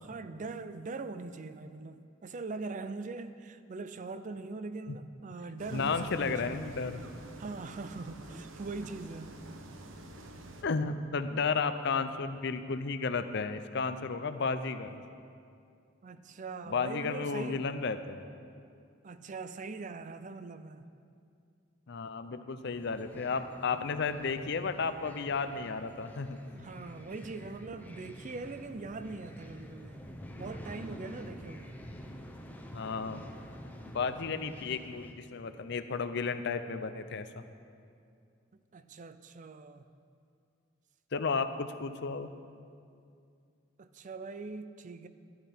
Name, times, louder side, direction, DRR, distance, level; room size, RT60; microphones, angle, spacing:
voice 1, 0.0-6.6 7.4-9.4 16.0-17.7 19.0-20.9 26.5-30.0 30.4-31.8 38.5-39.8 43.8-45.1, right 3 dB, 40° right, 11 dB, 0.5 m, -42 dB
sound 1, 5.6-10.6, right 1 dB, 85° right, 0.9 m, -48 dB
voice 2, 5.7-7.0 10.6-15.0 16.7-18.3 21.9-26.4 32.7-33.2 33.9-37.4 41.1-42.3, left 4 dB, 60° left, 10 dB, 0.6 m, -33 dB
sound 2, 22.7-35.1, equal, 10° left, 0.8 m, -48 dB
12.5 x 12.0 x 4.4 m, 2.4 s
head